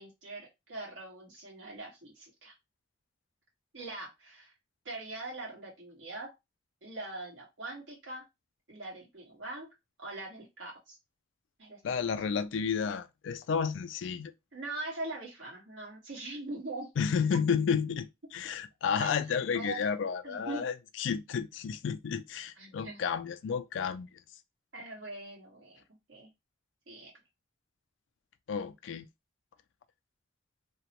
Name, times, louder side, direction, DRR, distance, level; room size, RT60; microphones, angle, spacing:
voice 1, 0.0-2.5 3.7-4.5 4.8-6.3 6.8-8.2 8.7-9.7 10.0-11.0 11.6-12.1 14.5-16.9 17.3-17.4 19.0-19.1 19.5-19.9 20.2-20.7 22.6-23.1 24.7-25.8 26.1-26.3 26.9-27.1, right 2 dB, 80° right, 1.4 m, -42 dB
voice 2, 11.8-14.3 17.0-24.1 28.5-29.1, left 6 dB, 80° left, 0.3 m, -31 dB
2.8 x 2.1 x 2.9 m
head